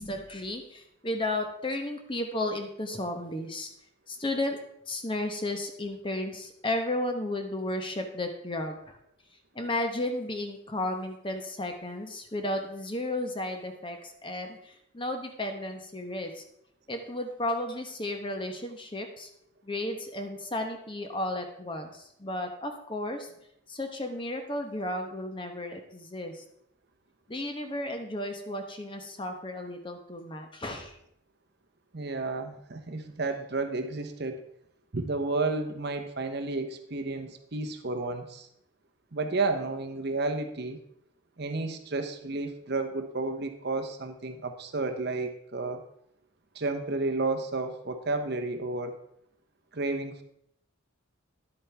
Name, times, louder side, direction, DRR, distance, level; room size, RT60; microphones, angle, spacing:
voice 1, 0.0-3.7 4.1-4.6 4.9-9.0 9.5-16.4 16.9-19.3 19.6-23.3 23.7-26.4 27.3-30.9, left 1 dB, 25° left, 5 dB, 1.0 m, -33 dB
voice 2, 31.9-34.4 34.9-38.5 39.1-40.8 41.4-45.8 46.5-49.0 49.7-50.2, right 3 dB, 50° right, 7 dB, 0.8 m, -31 dB
11.0 x 8.5 x 3.4 m, 0.73 s
head